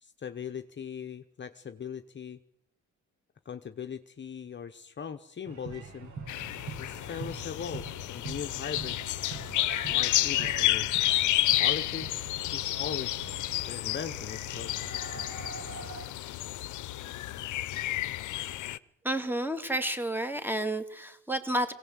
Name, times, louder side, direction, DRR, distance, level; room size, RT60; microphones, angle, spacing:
voice 1, 0.0-2.4 3.4-6.1 6.8-9.0 9.4-11.0 11.6-13.3 13.7-14.7, left 7 dB, 40° left, 8 dB, 1.0 m, -40 dB
sound 1, 5.5-16.0, right 3 dB, 75° right, 7.7 m, -44 dB
sound 2, 6.3-18.8, left 15 dB, 80° left, 0.8 m, -30 dB
voice 2, 19.0-21.7, right 1 dB, 5° right, 9 dB, 2.5 m, -30 dB
21.5 x 17.5 x 8.1 m, 0.82 s
cardioid pair, 90°, 30 cm